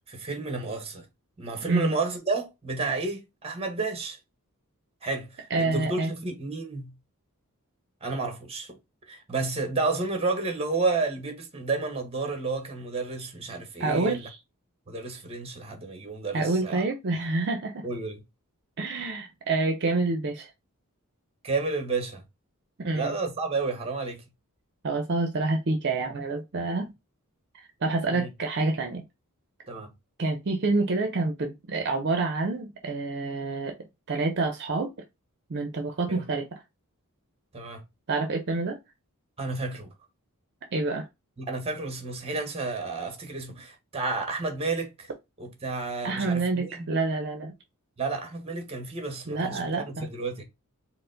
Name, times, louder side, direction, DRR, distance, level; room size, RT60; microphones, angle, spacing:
voice 1, 0.1-1.1 1.4-4.2 5.0-6.9 8.0-8.8 9.1-14.2 14.9-16.8 17.8-18.2 21.4-22.2 22.9-24.2 28.1-28.3 29.7-29.9 36.1-36.3 37.5-37.8 39.4-39.9 41.4-45.1 45.4-46.8 48.0-50.4, right 3 dB, 25° right, 1.0 m, -31 dB
voice 2, 5.5-6.1 13.8-14.4 16.3-17.9 18.8-20.5 22.8-23.1 24.8-26.9 27.8-29.0 30.2-33.8 34.1-34.9 35.5-36.6 38.1-38.8 40.7-41.1 46.0-47.5 49.3-50.1, right 3 dB, 55° right, 0.6 m, -27 dB
4.6 x 2.1 x 3.8 m
head